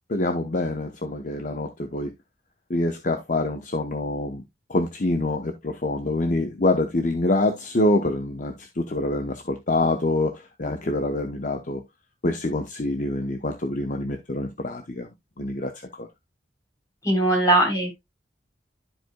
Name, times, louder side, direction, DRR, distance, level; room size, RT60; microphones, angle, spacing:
voice 1, 0.1-2.1 2.7-4.4 4.7-11.8 12.2-15.1 15.4-16.1, left 2 dB, 45° left, 0.8 m, -26 dB
voice 2, 17.0-17.9, right 1 dB, 20° left, 3.5 m, -20 dB
13.0 x 4.7 x 2.2 m
head